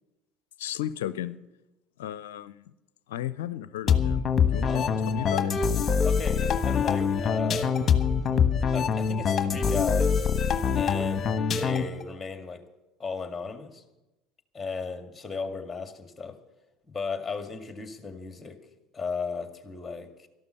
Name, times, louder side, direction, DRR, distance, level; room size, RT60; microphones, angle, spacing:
voice 1, 0.6-1.4 2.0-2.5 3.1-4.2 4.5-5.5, left 12 dB, 75° left, 16 dB, 0.5 m, -34 dB
sound 1, 3.9-12.0, left 6 dB, 30° left, 1.3 m, -24 dB
voice 2, 4.6-5.5 6.0-7.8 8.7-10.3 10.7-11.3 11.5-12.6 13.0-13.8 14.5-16.4 16.9-18.6 18.9-20.3, left 4 dB, 15° left, 7 dB, 2.0 m, -35 dB
13.5 x 12.0 x 6.6 m, 0.99 s
hypercardioid pair, 70°, 0 cm